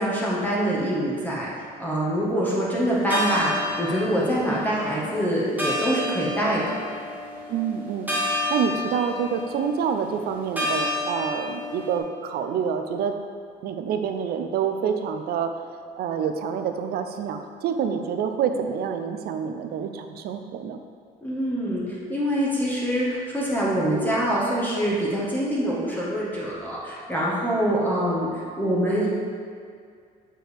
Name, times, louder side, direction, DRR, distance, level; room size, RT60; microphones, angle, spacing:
voice 1, 0.0-6.6 21.2-29.1, equal, 10° left, -6 dB, 1.4 m, -25 dB
sound 1, 2.9-12.0, left 1 dB, 10° right, 1.3 m, -31 dB
voice 2, 7.5-13.2 13.6-15.6 16.0-20.8, right 7 dB, 70° right, 6 dB, 0.5 m, -27 dB
7.6 x 4.6 x 3.5 m, 2.2 s
cardioid pair, 110°, 17 cm